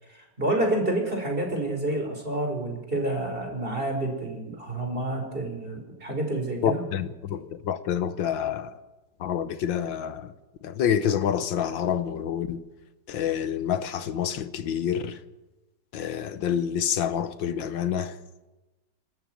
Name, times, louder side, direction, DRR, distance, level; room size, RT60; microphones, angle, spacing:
voice 1, 0.1-6.8, right 1 dB, 25° right, 5.0 m, -28 dB
voice 2, 6.6-8.7 9.2-10.3 10.6-12.6 13.1-15.2 15.9-18.2, left 9 dB, 80° left, 1.7 m, -27 dB
26.0 x 14.0 x 9.2 m
omnidirectional pair, 2.1 m